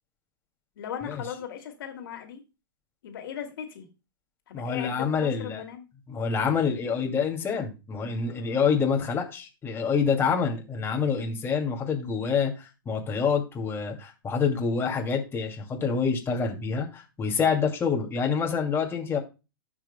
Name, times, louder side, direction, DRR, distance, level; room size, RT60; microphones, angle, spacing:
voice 1, 0.8-2.4 3.0-3.9 4.5-5.9, left 9 dB, 65° left, 2.4 m, -38 dB
voice 2, 4.5-5.6 6.1-19.2, left 6 dB, 20° left, 2.4 m, -27 dB
17.5 x 6.1 x 2.2 m
hypercardioid pair, 110°, 12 cm